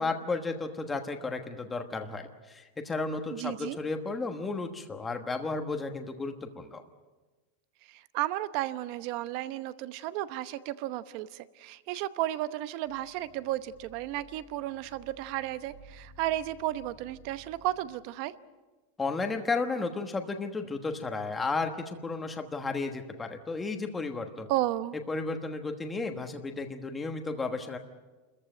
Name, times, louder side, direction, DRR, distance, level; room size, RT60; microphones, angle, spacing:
voice 1, 0.0-6.8 19.0-24.5 25.1-27.8, left 3 dB, 10° left, 5 dB, 1.2 m, -33 dB
voice 2, 3.3-3.8 7.9-18.3 24.5-25.0, right 14 dB, 45° right, 14 dB, 0.8 m, -33 dB
sound 1, 12.8-17.9, right 3 dB, 85° right, 3.9 m, -55 dB
28.0 x 14.5 x 9.1 m, 1.2 s
supercardioid pair, 170°, 0 cm